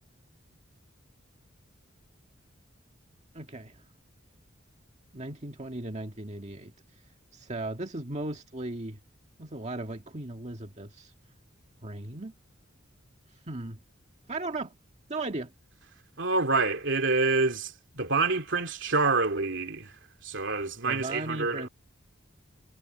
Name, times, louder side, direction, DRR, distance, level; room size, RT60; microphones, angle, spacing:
voice 1, 3.3-3.7 5.1-6.7 7.3-9.0 9.4-11.1 11.8-12.3 13.5-13.8 14.3-14.7 15.1-15.5 20.9-21.7, right 2 dB, 35° right, 1.8 m, -36 dB
voice 2, 16.2-19.9 20.2-21.7, right 3 dB, 65° right, 2.9 m, -27 dB
head